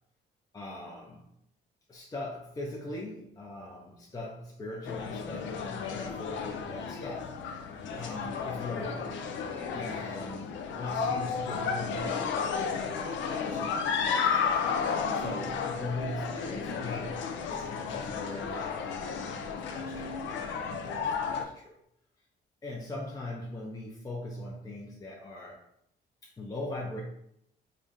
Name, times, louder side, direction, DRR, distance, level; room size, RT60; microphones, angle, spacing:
voice 1, 0.5-1.3 1.9-7.4 7.9-9.2 9.7-14.6 15.1-21.8 22.6-25.7 26.2-27.0, left 1 dB, 20° left, -3 dB, 0.6 m, -41 dB
sound 1, 4.8-21.4, left 6 dB, 80° left, 0.5 m, -33 dB
3.3 x 2.6 x 3.6 m, 0.73 s
cardioid pair, 130°, 19 cm